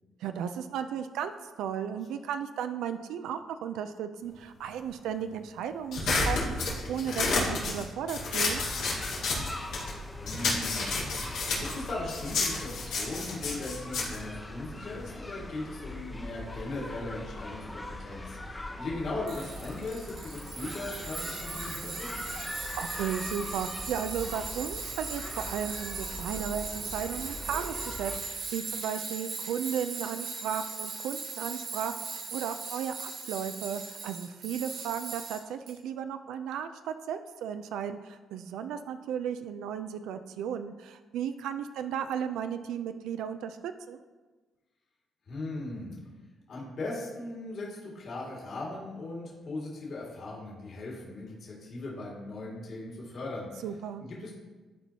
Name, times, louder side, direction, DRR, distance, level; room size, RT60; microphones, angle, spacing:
voice 1, 0.2-1.3 1.6-8.6 22.6-44.0 53.6-54.0, right 8 dB, 85° right, 9 dB, 0.3 m, -35 dB
sound 1, 5.9-10.0 10.3-15.1, left 3 dB, 90° left, 2.3 m, -31 dB
sound 2, 8.5-28.2, left 2 dB, 15° left, 0.7 m, -41 dB
voice 2, 10.1-10.9 11.6-22.3 45.3-46.0 46.5-53.5 54.0-54.3, left 2 dB, 55° left, -4 dB, 2.0 m, -38 dB
Tools, 19.3-35.7, right 4 dB, 70° right, 1.2 m, -39 dB
11.5 x 4.6 x 2.8 m, 1.3 s
cardioid pair, 90°, 0 cm